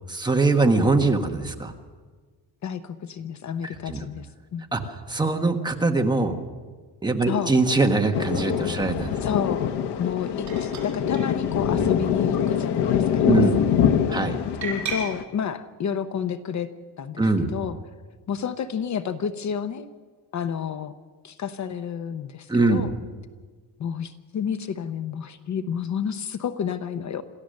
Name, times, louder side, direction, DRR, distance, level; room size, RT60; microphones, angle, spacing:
voice 1, 0.1-1.7 3.9-4.0 4.7-4.8 5.1-6.3 7.0-9.1 13.3-13.6 14.1-14.4 17.2-17.5 22.5-22.8, right 3 dB, 10° right, 4 dB, 1.2 m, -22 dB
voice 2, 2.6-4.6 7.3-7.5 9.2-9.6 10.0-13.9 14.6-16.7 17.0-17.3 17.5-17.8 18.3-19.9 20.3-20.9 21.2-22.9 23.8-27.2, left 7 dB, 45° left, 10 dB, 0.8 m, -30 dB
Thunder, 8.1-15.2, left 8 dB, 80° left, 1.1 m, -24 dB
sound 1, 10.5-10.9 11.1-11.2 11.5-12.4 12.8-13.2 14.6-15.0, right 6 dB, 45° right, 6.0 m, -35 dB
27.0 x 14.5 x 6.5 m, 1.5 s
cardioid pair, 180°, 40 cm